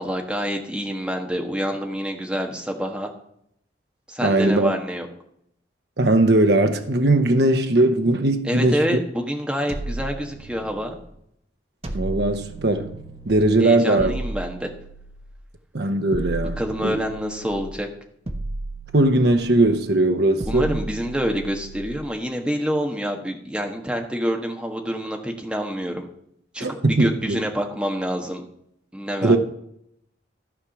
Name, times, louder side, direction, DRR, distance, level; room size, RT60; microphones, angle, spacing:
voice 1, 0.0-3.1 4.1-5.1 8.5-11.0 13.6-14.7 16.6-17.9 20.5-26.1 26.5-28.4 28.9-29.4, equal, 5° right, 1.4 m, -27 dB
voice 2, 4.2-4.7 6.0-9.0 11.9-12.9 13.3-14.1 15.7-17.0 18.9-20.8 26.6-27.4 29.2-29.4, right 2 dB, 60° right, 0.9 m, -19 dB
sound 1, 9.7-11.0 11.8-13.5 14.0-15.4 16.1-17.7 18.3-19.7 20.4-22.0, right 2 dB, 30° right, 1.0 m, -34 dB
13.0 x 4.9 x 7.0 m
head